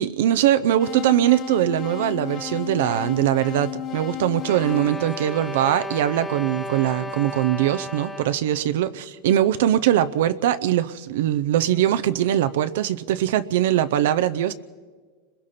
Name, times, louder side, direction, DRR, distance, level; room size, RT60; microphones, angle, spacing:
voice 1, 0.0-14.5, right 12 dB, 75° right, 0.6 m, -21 dB
sound 1, 0.8-5.9, left 10 dB, 40° left, 2.0 m, -34 dB
sound 2, 4.4-8.5, left 1 dB, ahead, 1.0 m, -34 dB
29.5 x 21.5 x 4.2 m
supercardioid pair, 130°, 0 cm